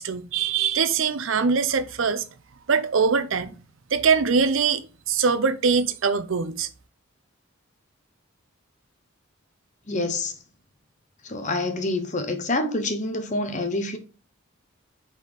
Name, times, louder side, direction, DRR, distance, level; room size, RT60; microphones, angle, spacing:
voice 1, 0.0-2.2 2.7-3.6 3.9-4.8 5.1-6.7, right 5 dB, 70° right, 0.6 m, -22 dB
voice 2, 9.9-10.4 11.2-14.0, left 2 dB, 35° left, 0.9 m, -27 dB
5.4 x 4.1 x 4.8 m
head